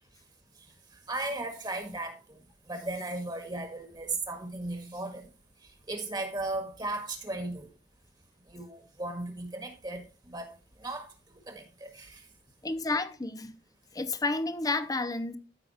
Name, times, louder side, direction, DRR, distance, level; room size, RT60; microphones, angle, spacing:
voice 1, 0.9-2.4 2.7-5.3 5.9-7.7 8.5-10.5 10.8-12.2, right 2 dB, 25° right, 1.7 m, -36 dB
voice 2, 12.6-13.6 13.9-15.4, left 3 dB, 20° left, 0.7 m, -31 dB
13.5 x 5.6 x 3.5 m
head